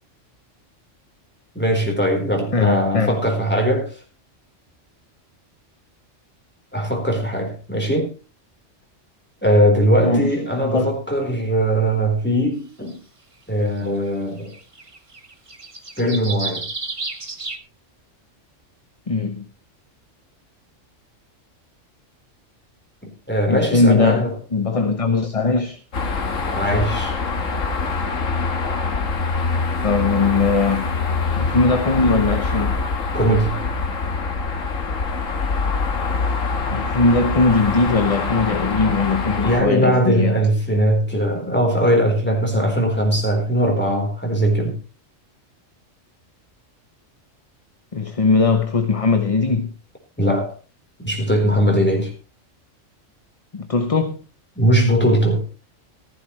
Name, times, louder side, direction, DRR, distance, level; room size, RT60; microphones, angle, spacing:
voice 1, 1.5-4.0 6.7-8.1 9.4-13.0 13.5-14.5 16.0-16.7 23.3-24.3 26.5-27.2 33.1-33.6 39.4-44.8 50.2-50.5 51.0-52.1 54.6-55.4, equal, 10° left, 4.1 m, -20 dB
voice 2, 2.5-3.2 10.0-10.9 19.1-19.5 23.5-25.8 29.8-31.0 31.3-32.8 36.7-40.4 47.9-49.7 53.5-54.2, left 3 dB, 30° left, 1.0 m, -20 dB
sound 1, 12.9-13.0 14.1-14.2 14.4-17.6, right 3 dB, 25° right, 1.3 m, -32 dB
sound 2, 25.9-39.6, left 4 dB, 80° left, 1.9 m, -24 dB
15.0 x 14.5 x 3.2 m
omnidirectional pair, 1.3 m